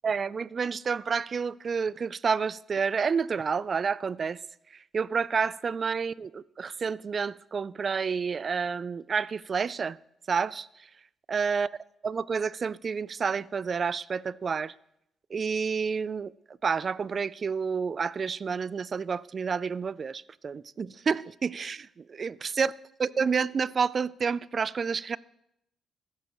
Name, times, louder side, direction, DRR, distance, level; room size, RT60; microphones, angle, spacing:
voice 1, 0.0-4.4 4.7-10.0 10.3-10.9 11.3-11.7 12.0-14.7 15.3-22.7 23.0-25.2, right 5 dB, 40° right, 0.3 m, -29 dB
15.0 x 12.0 x 3.0 m
cardioid pair, 90°, 0 cm